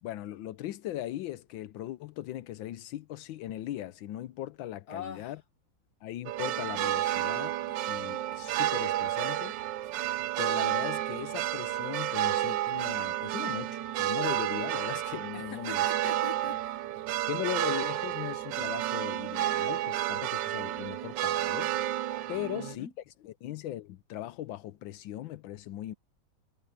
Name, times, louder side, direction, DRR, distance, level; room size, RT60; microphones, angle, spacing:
voice 1, 0.0-5.4 6.0-7.6 7.9-9.6 10.4-15.8 17.3-21.8 22.3-22.9 23.2-25.9, left 13 dB, 80° left, 1.4 m, -38 dB
voice 2, 4.9-5.3 15.3-16.8 22.3-22.9, left 6 dB, 55° left, 1.5 m, -43 dB
sound 1, 6.3-22.8, right 13 dB, 75° right, 1.2 m, -31 dB
omnidirectional pair, 2.1 m